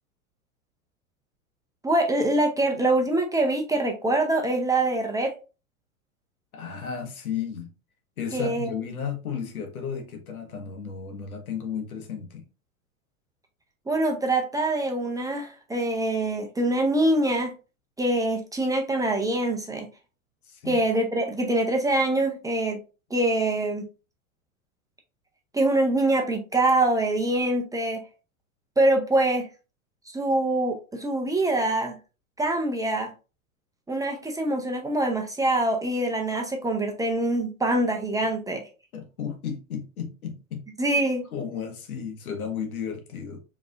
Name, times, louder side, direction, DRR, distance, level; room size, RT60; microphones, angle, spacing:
voice 1, 1.8-5.3 8.3-8.7 13.9-17.5 18.0-19.9 20.7-22.8 23.1-23.9 25.5-28.0 28.8-29.5 30.1-32.0 32.4-33.1 33.9-38.6 40.8-41.2, right 1 dB, 10° right, 0.7 m, -24 dB
voice 2, 6.5-7.7 8.2-12.4 20.5-20.8 38.9-40.7 41.3-43.4, left 7 dB, 85° left, 1.2 m, -34 dB
4.9 x 3.2 x 2.4 m
hypercardioid pair, 105°, 42 cm